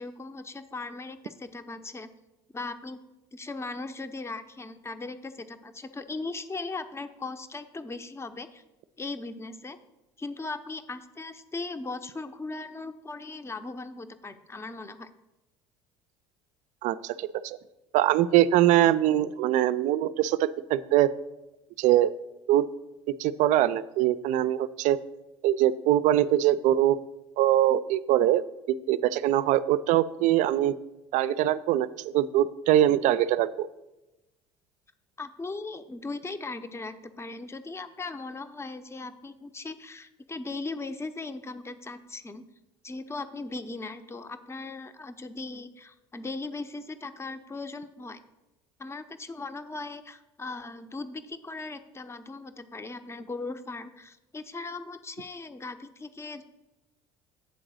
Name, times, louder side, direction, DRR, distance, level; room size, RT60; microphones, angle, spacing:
voice 1, 0.0-2.1 2.5-3.0 3.3-8.6 9.0-9.8 10.2-15.1 35.2-42.4 42.8-48.2 48.8-56.4, left 3 dB, 20° left, 10 dB, 0.6 m, -38 dB
voice 2, 16.8-17.6 17.9-21.1 21.8-22.1 22.5-22.7 23.2-25.0 25.4-27.0 27.4-30.7 31.1-33.7, right 13 dB, 60° right, 16 dB, 0.4 m, -23 dB
8.0 x 3.9 x 6.2 m, 1.0 s
hypercardioid pair, 75°, 14 cm